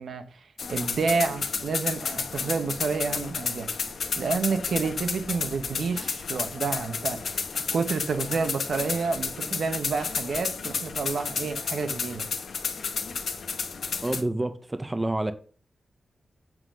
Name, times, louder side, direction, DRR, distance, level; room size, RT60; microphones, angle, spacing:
voice 1, 0.0-3.7 4.2-12.3, right 4 dB, 75° right, 0.9 m, -29 dB
sound 1, 0.6-14.2, left 5 dB, 70° left, 1.0 m, -32 dB
voice 2, 14.0-15.3, right 2 dB, 15° right, 0.5 m, -28 dB
7.7 x 3.8 x 6.4 m
wide cardioid pair, 165°, 0 cm